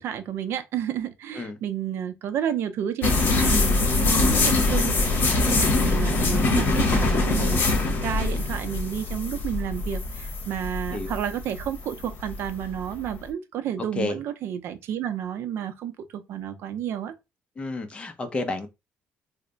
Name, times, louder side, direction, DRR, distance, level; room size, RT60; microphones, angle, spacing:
voice 1, 0.0-5.2 5.5-17.1, right 9 dB, 65° right, 0.5 m, -31 dB
sound 1, 3.0-13.2, left 3 dB, 50° left, 1.1 m, -23 dB
voice 2, 5.8-6.1 10.9-11.1 13.9-14.2 17.6-18.7, left 2 dB, 25° left, 0.6 m, -31 dB
3.2 x 2.1 x 3.8 m
cardioid pair, 135°, 4 cm